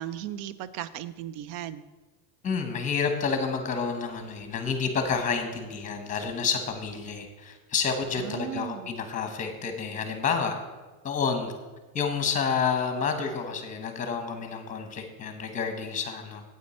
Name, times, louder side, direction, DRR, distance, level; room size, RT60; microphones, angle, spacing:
voice 1, 0.0-1.8 8.1-8.9, right 11 dB, 55° right, 16 dB, 0.6 m, -36 dB
voice 2, 2.4-10.6 11.0-11.5 11.9-16.4, left 5 dB, 15° left, 6 dB, 1.0 m, -29 dB
8.7 x 8.5 x 4.3 m, 1.3 s
supercardioid pair, 155°, 49 cm